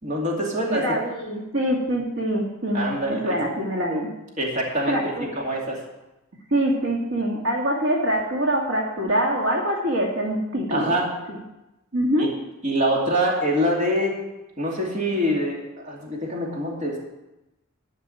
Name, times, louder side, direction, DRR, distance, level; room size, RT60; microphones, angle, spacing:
voice 1, 0.0-0.8 2.7-3.4 4.4-5.8 10.7-11.1 12.2-12.3 12.6-14.2 14.6-17.0, equal, 35° right, -2 dB, 2.6 m, -25 dB
voice 2, 0.7-4.1 4.9-5.3 6.5-10.9 11.9-12.3, right 1 dB, 75° right, -1 dB, 2.2 m, -24 dB
12.5 x 5.5 x 9.1 m, 0.98 s
head